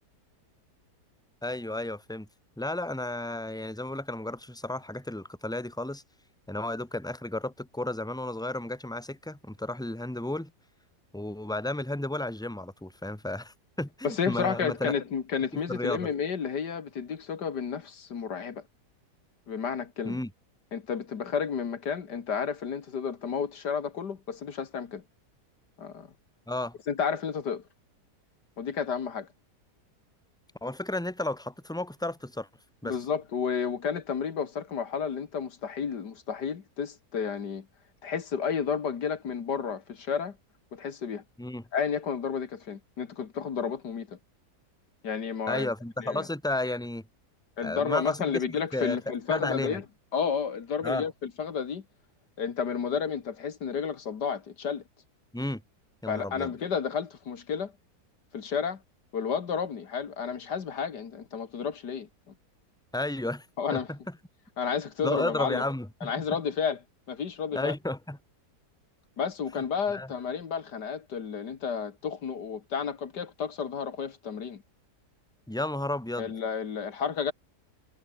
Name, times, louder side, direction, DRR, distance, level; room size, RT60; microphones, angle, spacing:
voice 1, 1.4-2.3 2.6-6.0 6.5-10.5 11.1-14.9 15.5-16.1 20.0-20.3 26.5-26.8 30.6-32.5 32.8-33.0 41.4-41.6 45.5-47.0 47.6-48.4 48.7-49.0 49.3-49.8 50.8-51.1 55.3-55.6 56.0-56.5 62.9-63.5 63.7-64.0 65.0-66.1 67.5-68.2 69.9-70.1 75.5-76.3, left 1 dB, ahead, 2.6 m, -33 dB
voice 2, 14.0-18.6 19.5-20.2 20.7-25.0 25.8-26.1 26.9-27.6 28.6-29.3 32.8-37.7 38.0-40.4 40.7-41.2 41.7-44.2 45.0-45.7 46.0-46.3 47.6-49.8 50.1-51.8 52.4-54.8 56.1-57.7 58.3-58.8 59.1-62.1 63.6-63.9 64.6-65.6 66.0-66.8 67.1-67.7 69.2-74.6 76.2-77.3, left 6 dB, 75° left, 2.3 m, -31 dB
omnidirectional pair, 1.8 m